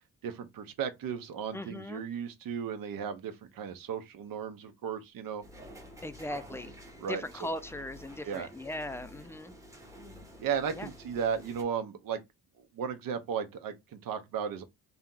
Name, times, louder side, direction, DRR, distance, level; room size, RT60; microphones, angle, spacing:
voice 1, 0.2-5.4 7.0-7.5 8.2-8.5 10.4-12.2 12.7-14.6, right 7 dB, 80° right, 0.9 m, -35 dB
voice 2, 1.5-2.0 6.0-6.7 7.1-9.6 10.8-10.9, left 1 dB, 10° left, 0.4 m, -39 dB
sound 1, 5.4-11.6, equal, 10° right, 0.8 m, -50 dB
3.4 x 2.8 x 3.7 m
cardioid pair, 140°, 33 cm